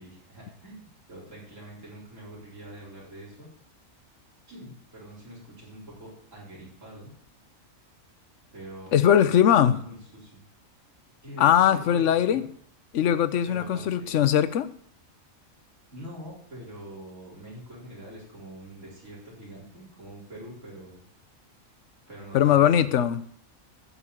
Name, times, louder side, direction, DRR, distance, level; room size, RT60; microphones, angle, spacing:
voice 1, 0.0-3.5 4.5-7.1 8.5-10.4 11.2-12.5 13.4-14.3 15.9-21.0 22.1-22.9, right 1 dB, 65° right, -5 dB, 4.7 m, -44 dB
voice 2, 8.9-9.8 11.4-12.4 12.9-14.7 22.3-23.2, left 10 dB, 65° left, 13 dB, 1.0 m, -20 dB
12.5 x 5.5 x 8.8 m, 0.63 s
omnidirectional pair, 1.4 m